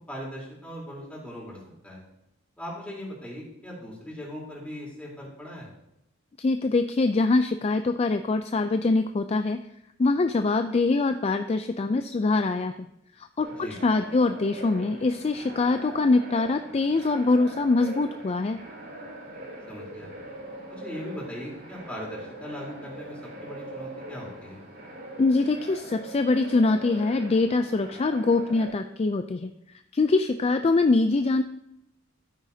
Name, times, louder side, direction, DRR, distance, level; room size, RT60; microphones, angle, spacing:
voice 1, 0.1-1.6 1.8-2.0 2.6-5.7 13.6-13.8 19.7-20.1 20.7-24.6, equal, 5° left, -5 dB, 3.6 m, -39 dB
voice 2, 6.4-9.6 10.0-12.7 13.2-18.6 25.2-29.5 29.9-31.4, left 3 dB, 30° left, 8 dB, 0.4 m, -24 dB
sound 1, 13.4-28.7, right 1 dB, 50° right, 3.6 m, -42 dB
12.5 x 9.0 x 2.8 m, 0.83 s
head